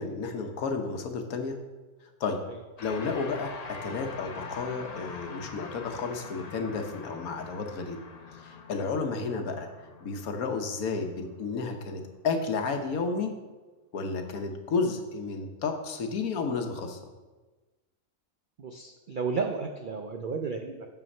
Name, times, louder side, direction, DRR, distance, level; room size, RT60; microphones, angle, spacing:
voice 1, 0.0-1.6 2.2-2.4 2.8-8.0 8.4-9.7 10.0-13.3 13.9-17.0, left 4 dB, 70° left, 5 dB, 1.4 m, -32 dB
sound 1, 2.8-12.2, left 4 dB, 45° left, 0.5 m, -44 dB
voice 2, 18.6-20.9, right 5 dB, 85° right, 4 dB, 0.4 m, -33 dB
7.3 x 5.8 x 5.4 m, 1.2 s
omnidirectional pair, 1.6 m